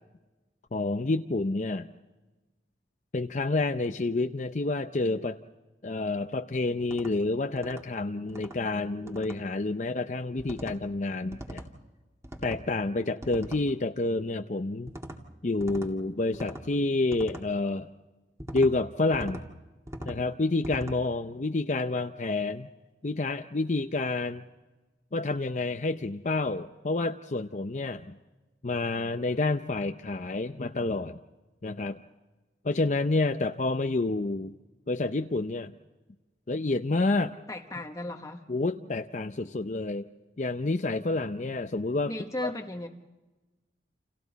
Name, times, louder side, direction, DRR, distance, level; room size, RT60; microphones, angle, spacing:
voice 1, 0.7-1.9 3.1-5.4 5.8-11.6 12.4-14.9 15.4-17.9 18.5-19.4 20.0-22.7 23.0-24.4 25.1-28.2 28.6-31.2 31.6-32.0 32.6-34.5 34.9-35.7 36.5-37.3 38.5-40.1 40.4-42.1 42.4-42.5, left 2 dB, 45° left, 0.6 m, -29 dB
sound 1, 6.8-7.1 7.6-7.8 8.3-8.6 9.1-9.4 10.4-10.8 11.3-11.7 12.2-12.6 13.2-13.6 14.9-15.2 15.6-15.9 16.3-16.7 17.1-17.4 18.4-18.7 19.1-19.4 19.9-20.2 20.6-21.0, equal, 15° right, 2.2 m, -40 dB
voice 2, 37.3-38.5 42.1-42.9, left 1 dB, 20° left, 1.1 m, -36 dB
29.5 x 28.5 x 4.1 m
head